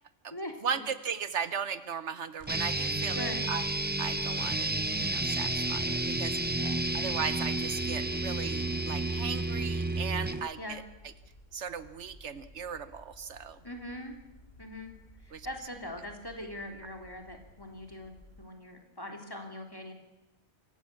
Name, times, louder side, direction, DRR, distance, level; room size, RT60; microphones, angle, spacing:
voice 1, 0.6-3.6 4.0-6.4 6.9-10.8 11.5-13.6 15.3-15.5, right 7 dB, 75° right, 13 dB, 1.2 m, -37 dB
sound 1, 2.4-10.4, right 1 dB, 40° right, 6.6 m, -49 dB
sound 2, 2.5-10.5, right 2 dB, 15° right, 0.4 m, -31 dB
voice 2, 3.1-3.5 6.5-6.8 10.6-10.8 13.6-14.2 14.6-14.9 15.2-19.9, left 1 dB, 20° left, 3 dB, 3.2 m, -41 dB
sound 3, 3.6-18.5, left 1 dB, 55° left, 4.7 m, -56 dB
25.5 x 15.0 x 8.6 m, 0.98 s
omnidirectional pair, 1.2 m